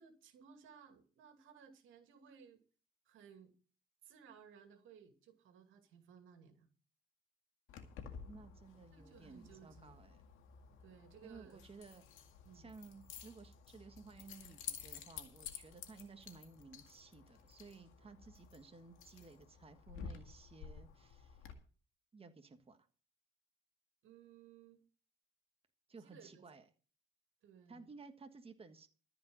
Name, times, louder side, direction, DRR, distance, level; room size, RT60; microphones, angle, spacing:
voice 1, 0.0-2.6 3.0-3.5 4.0-6.7 8.9-10.0 10.8-11.6 12.4-12.7 24.0-24.8 26.0-26.4 27.4-27.9, right 7 dB, 85° right, 2.3 m, -60 dB
Keys jangling, 7.7-21.5, left 7 dB, 90° left, 2.1 m, -52 dB
voice 2, 8.1-10.2 11.2-12.0 12.5-21.5 22.1-22.8 25.9-26.6 27.7-28.9, right 4 dB, 30° right, 1.6 m, -56 dB
14.0 x 5.1 x 9.3 m
cardioid pair, 90°, 20 cm